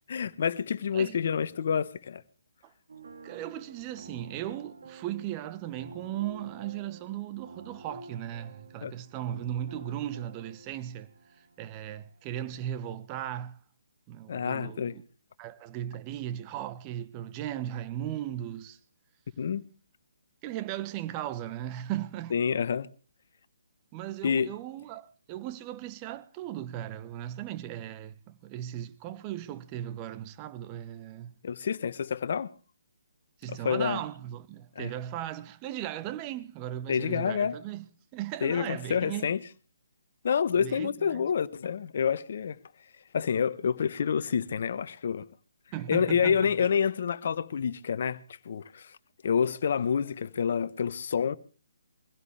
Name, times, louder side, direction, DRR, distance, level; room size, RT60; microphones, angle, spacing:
voice 1, 0.1-2.2 8.8-8.9 14.3-15.0 19.4-19.7 22.3-22.9 24.2-24.5 31.4-32.5 33.5-34.0 34.7-34.9 36.9-37.6 38.4-39.4 40.2-42.6 43.1-45.2 45.9-49.0 49.2-51.3, left 7 dB, 55° left, 1.2 m, -28 dB
sound 1, 2.9-13.0, right 3 dB, 65° right, 3.2 m, -50 dB
voice 2, 3.2-11.1 11.4-13.6 14.1-15.0 15.4-18.8 20.4-22.3 23.9-31.3 33.4-39.3 40.6-41.2 45.7-46.7, right 12 dB, 25° right, 1.1 m, -37 dB
23.5 x 16.0 x 3.3 m
figure-of-eight pair, 140°, 0 cm